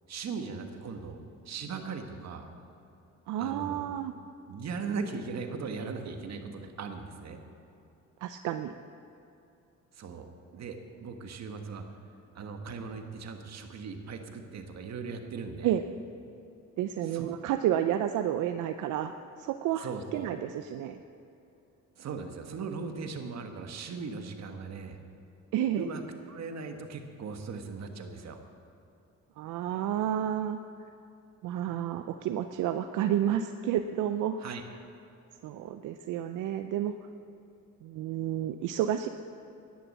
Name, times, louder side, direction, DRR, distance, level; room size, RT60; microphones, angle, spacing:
voice 1, 0.1-1.2 1.4-2.5 3.4-3.8 4.5-7.4 9.9-11.8 12.3-15.8 17.1-17.3 19.8-20.3 22.0-25.0 25.8-26.0 26.3-28.4 34.4-34.6, right 5 dB, 60° right, 5 dB, 1.5 m, -38 dB
voice 2, 3.3-4.1 8.2-8.7 15.6-15.8 16.8-19.1 19.4-21.0 25.5-25.9 29.4-30.9 31.4-34.4 35.4-37.0 37.8-39.1, right 11 dB, 85° right, 9 dB, 0.5 m, -30 dB
11.0 x 10.5 x 7.5 m, 2.8 s
cardioid pair, 90°, 30 cm